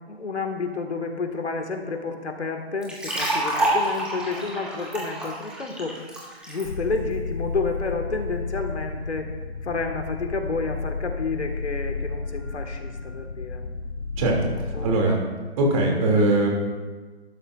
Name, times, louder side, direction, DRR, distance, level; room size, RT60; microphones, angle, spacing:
voice 1, 0.1-6.0 6.5-9.3 9.6-13.6 14.5-14.9, left 4 dB, 85° left, 4 dB, 1.9 m, -30 dB
sound 1, 2.8-6.6, right 1 dB, 5° right, 1.4 m, -27 dB
sound 2, 6.6-14.9, left 4 dB, 70° left, 1.4 m, -32 dB
voice 2, 14.2-14.5 14.8-15.2 15.6-16.5, right 2 dB, 30° right, -1 dB, 2.8 m, -20 dB
13.0 x 12.0 x 2.6 m, 1.3 s
hypercardioid pair, 150°, 33 cm